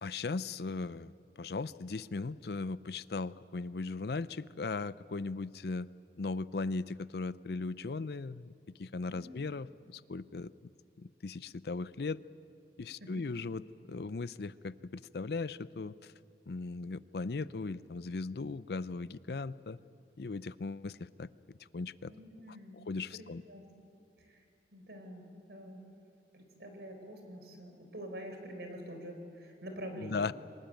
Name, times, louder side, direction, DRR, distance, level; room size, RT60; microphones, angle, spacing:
voice 1, 0.0-5.9 6.2-8.5 8.8-10.5 11.0-12.2 12.8-13.6 13.9-16.1 16.5-19.8 20.2-21.3 21.7-22.1 22.5-23.4 30.0-30.3, left 3 dB, 65° left, 17 dB, 0.5 m, -38 dB
voice 2, 9.1-9.4 13.0-13.2 22.1-22.8 23.1-23.6 24.2-24.4 24.7-25.8 26.3-30.3, equal, 75° right, 5 dB, 4.1 m, -46 dB
24.5 x 20.0 x 9.1 m, 2.5 s
head